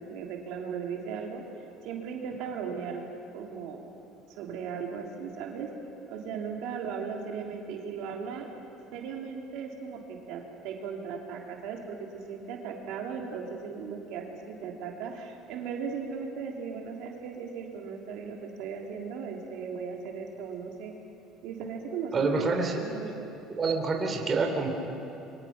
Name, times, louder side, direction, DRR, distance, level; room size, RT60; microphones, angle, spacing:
voice 1, 0.0-1.4 1.8-3.0 3.3-3.9 4.3-5.7 6.1-8.5 8.9-20.9 21.4-23.3, right 6 dB, 75° right, 1 dB, 3.2 m, -37 dB
voice 2, 22.1-22.8 23.5-24.7, right 4 dB, 30° right, 3 dB, 3.1 m, -27 dB
29.0 x 24.0 x 6.0 m, 2.9 s
cardioid pair, 130°, 0 cm